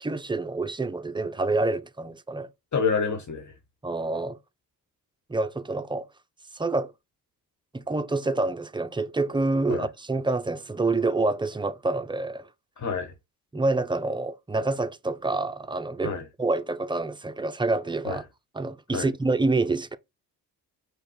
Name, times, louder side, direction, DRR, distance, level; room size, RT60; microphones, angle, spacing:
voice 1, 0.0-2.5 3.8-4.4 5.3-6.1 6.5-6.9 7.7-12.5 13.5-18.2 18.5-20.0, right 3 dB, 10° right, 0.5 m, -27 dB
voice 2, 2.7-3.5 9.7-9.9 12.8-13.1 16.0-16.2 18.1-18.2 18.9-19.1, left 5 dB, 45° left, 1.3 m, -27 dB
5.2 x 2.3 x 4.3 m
supercardioid pair, 60°, 42 cm